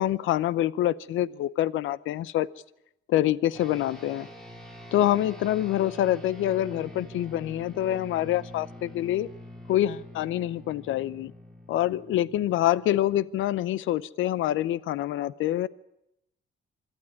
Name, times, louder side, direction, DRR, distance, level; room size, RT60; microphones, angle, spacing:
voice 1, 0.0-2.5 3.1-4.3 4.9-9.3 9.7-11.3 11.7-15.7, left 13 dB, 80° left, 20 dB, 0.7 m, -26 dB
sound 1, 3.5-13.3, left 1 dB, 5° left, 4.4 m, -46 dB
25.0 x 12.5 x 9.5 m, 0.85 s
cardioid pair, 90°, 20 cm